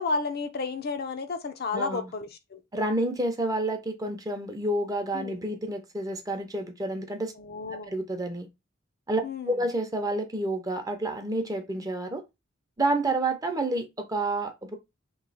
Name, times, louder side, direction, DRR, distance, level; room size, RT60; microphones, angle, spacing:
voice 1, 0.0-2.6 5.1-5.4 7.4-7.9 9.2-9.7, left 4 dB, 50° left, 0.6 m, -32 dB
voice 2, 1.7-2.1 2.7-7.3 7.9-8.5 9.1-12.2 12.8-14.8, right 2 dB, 20° right, 0.6 m, -29 dB
3.0 x 2.8 x 4.0 m
head